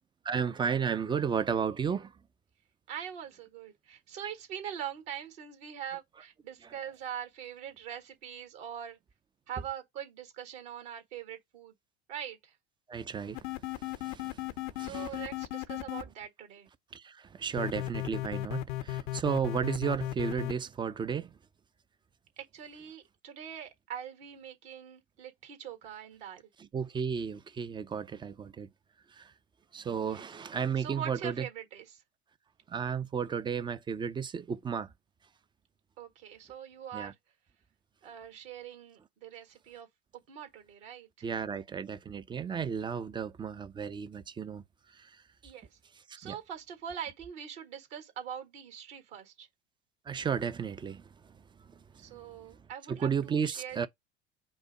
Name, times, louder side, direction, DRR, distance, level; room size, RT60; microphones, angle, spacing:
voice 1, 0.2-2.1 12.9-13.4 13.8-14.4 14.8-15.1 16.9-21.3 26.6-28.7 29.1-29.3 29.7-31.5 32.7-34.9 36.9-37.1 41.2-44.6 45.0-45.1 46.1-46.4 50.1-51.0 52.9-53.9, right 7 dB, 15° right, 0.3 m, -33 dB
voice 2, 2.9-9.0 9.5-11.7 12.1-12.5 14.8-16.7 22.4-26.4 30.0-30.3 30.8-32.0 36.0-37.1 38.0-39.9 40.3-41.3 45.4-45.7 46.1-49.5 52.0-53.9, right 9 dB, 65° right, 1.6 m, -43 dB
sound 1, 13.3-16.0 17.6-20.5, left 15 dB, 65° left, 0.6 m, -35 dB
5.3 x 2.1 x 4.7 m
hypercardioid pair, 75°, 33 cm